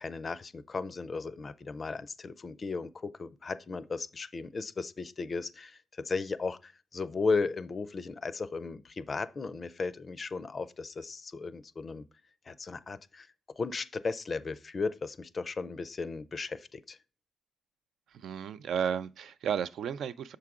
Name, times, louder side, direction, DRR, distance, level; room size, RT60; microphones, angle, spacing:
voice 1, 0.0-12.0 12.5-13.3 13.6-17.0, left 4 dB, 35° left, 0.4 m, -35 dB
voice 2, 18.1-20.4, right 8 dB, 75° right, 0.3 m, -33 dB
6.6 x 4.7 x 3.6 m
cardioid pair, 115°, 0 cm